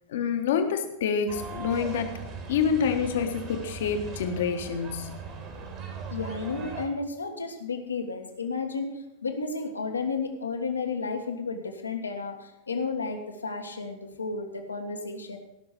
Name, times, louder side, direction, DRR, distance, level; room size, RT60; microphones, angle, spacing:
voice 1, 0.1-2.2 2.5-5.1, left 6 dB, 60° left, 6 dB, 1.5 m, -27 dB
sound 1, 1.3-6.9, right 5 dB, 40° right, 3.0 m, -39 dB
voice 2, 6.1-15.4, left 4 dB, 75° left, 4 dB, 1.6 m, -32 dB
18.0 x 6.2 x 6.7 m, 0.88 s
figure-of-eight pair, 90°, 0 cm